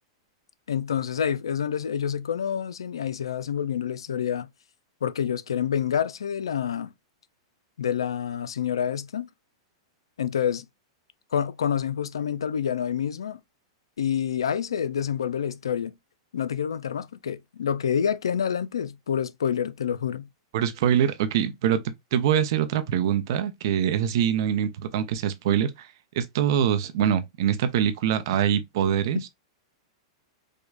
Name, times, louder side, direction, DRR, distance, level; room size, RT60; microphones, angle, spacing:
voice 1, 0.7-4.5 5.0-6.9 7.8-9.3 10.2-10.7 11.3-13.4 14.0-15.9 16.3-20.3, left 8 dB, 85° left, 0.4 m, -27 dB
voice 2, 20.5-21.8 22.1-25.9 26.2-29.2, right 9 dB, 60° right, 0.6 m, -24 dB
4.9 x 2.1 x 2.4 m
hypercardioid pair, 120°, 3 cm